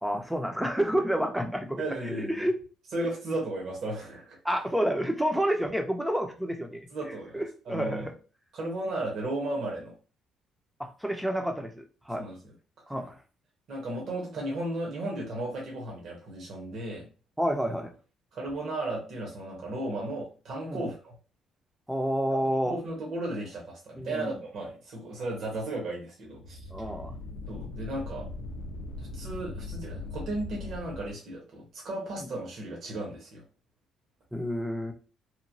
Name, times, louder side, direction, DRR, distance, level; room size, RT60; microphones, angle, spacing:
voice 1, 0.0-1.8 2.1-2.6 3.0-3.1 4.4-6.9 7.3-8.1 10.8-12.2 12.9-13.2 17.4-17.9 20.6-20.8 21.9-22.7 24.0-24.4 26.7-27.2 34.3-34.9, equal, 5° right, 4 dB, 0.5 m, -29 dB
voice 2, 1.8-2.5 2.9-4.4 6.9-8.1 8.5-9.9 12.2-12.4 13.7-17.1 18.3-21.1 22.6-26.6 27.5-28.3 29.0-33.4, right 2 dB, 60° right, -2 dB, 1.0 m, -35 dB
sound 1, 26.3-31.1, left 2 dB, 85° left, 0.4 m, -40 dB
2.9 x 2.2 x 2.6 m, 0.36 s
cardioid pair, 105°, 0 cm